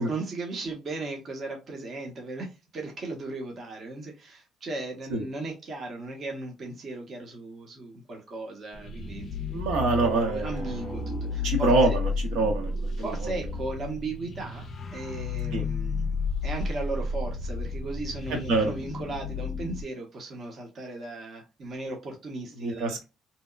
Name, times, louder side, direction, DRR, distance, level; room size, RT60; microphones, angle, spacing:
voice 1, 0.0-9.3 9.8-12.0 13.0-14.6 14.9-16.2 16.4-23.0, right 2 dB, 35° right, 1 dB, 0.7 m, -36 dB
sound 1, 8.7-19.8, left 3 dB, 35° left, 0.4 m, -32 dB
voice 2, 9.5-11.1 11.4-11.9 12.3-12.7 15.5-15.6 18.5-18.7 22.6-23.0, right 3 dB, 75° right, 3 dB, 0.9 m, -25 dB
2.8 x 2.1 x 2.2 m, 0.27 s
cardioid pair, 175°, 0 cm